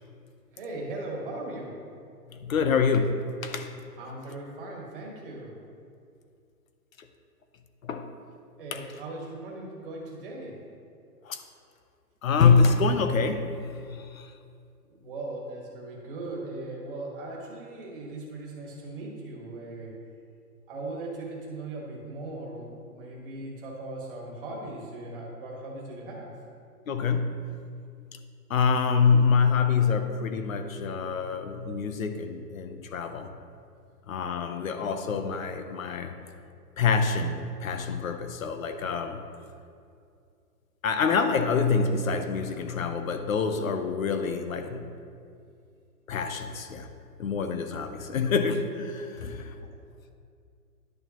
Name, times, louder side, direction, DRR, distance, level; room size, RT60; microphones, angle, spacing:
voice 1, 0.5-1.8 4.0-5.6 8.6-10.6 15.0-19.9 20.7-26.3 49.2-49.3, right 2 dB, 35° right, -3 dB, 1.6 m, -38 dB
voice 2, 2.3-3.7 7.8-8.1 8.7-8.9 11.2-11.4 12.2-13.5 13.9-14.3 26.9-27.5 28.5-33.3 34.1-36.2 36.8-39.2 40.8-44.9 46.1-46.9 47.2-49.5, left 5 dB, 55° left, 8 dB, 0.8 m, -26 dB
11.0 x 6.6 x 3.0 m, 2.4 s
hypercardioid pair, 165°, 49 cm